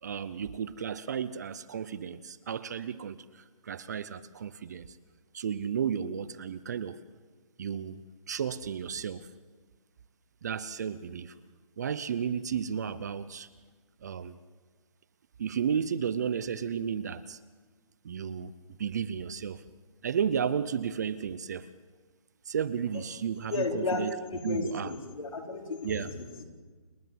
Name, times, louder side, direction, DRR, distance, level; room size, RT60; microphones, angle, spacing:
voice 1, 0.0-5.0 5.3-7.0 7.6-8.0 8.3-9.3 10.4-11.4 11.8-13.5 14.0-14.4 15.4-17.4 18.0-19.6 20.0-21.7 22.5-24.2 24.4-24.9 25.8-26.1, right 7 dB, 30° right, 16 dB, 0.5 m, -33 dB
voice 2, 23.5-26.4, left 3 dB, 65° left, 2 dB, 4.4 m, -33 dB
29.0 x 10.5 x 9.3 m, 1.4 s
hypercardioid pair, 165°, 18 cm